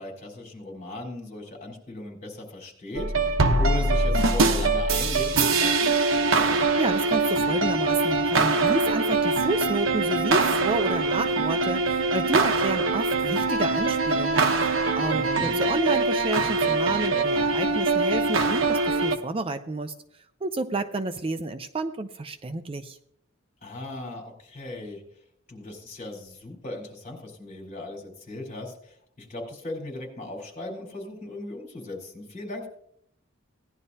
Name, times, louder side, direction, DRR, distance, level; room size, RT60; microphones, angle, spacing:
voice 1, 0.0-3.3 3.6-5.9 15.1-15.6 23.6-25.0 25.5-32.7, left 2 dB, 40° left, 1 dB, 4.0 m, -37 dB
sound 1, 2.9-19.2, right 3 dB, 75° right, 1.0 m, -23 dB
voice 2, 6.8-19.9 20.4-23.0, right 2 dB, 30° right, 9 dB, 0.5 m, -30 dB
18.0 x 11.0 x 2.8 m, 0.69 s
head